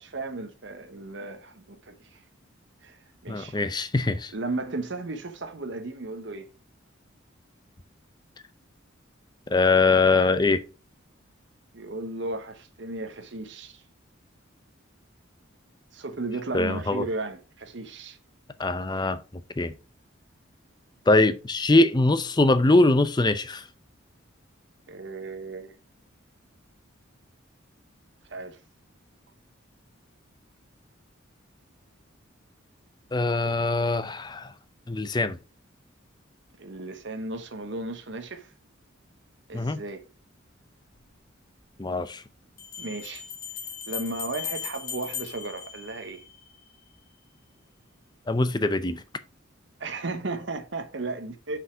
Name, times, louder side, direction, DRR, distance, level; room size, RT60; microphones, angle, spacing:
voice 1, 0.0-2.2 2.8-3.0 3.2-3.6 4.3-6.5 11.7-13.8 15.9-18.2 24.9-25.7 28.3-28.6 33.4-33.6 36.6-38.5 39.5-40.1 42.8-43.2 43.9-46.2 49.8-51.6, right 2 dB, 60° right, 0.9 m, -35 dB
voice 2, 3.3-4.3 9.5-10.6 16.5-17.0 18.6-19.2 19.6-19.7 21.1-23.6 33.1-34.5 34.9-35.4 39.5-39.8 41.8-42.2 48.3-49.0, left 2 dB, 20° left, 0.5 m, -22 dB
Bell, 40.9-41.0 42.6-46.5, left 7 dB, 45° left, 2.4 m, -37 dB
6.3 x 5.1 x 4.4 m
head